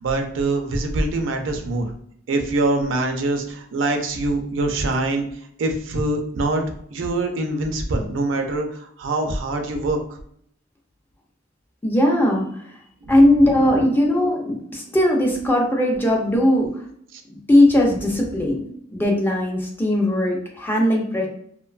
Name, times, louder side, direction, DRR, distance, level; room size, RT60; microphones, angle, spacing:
voice 1, 0.0-1.9 2.3-5.3 5.6-6.6 6.9-10.0 13.0-13.1 17.1-17.2, right 2 dB, 70° right, 4 dB, 0.4 m, -24 dB
voice 2, 11.8-12.6 13.1-16.8 17.5-18.6 18.9-21.3, left 1 dB, 10° left, -1 dB, 0.4 m, -18 dB
2.5 x 2.2 x 2.3 m, 0.66 s
head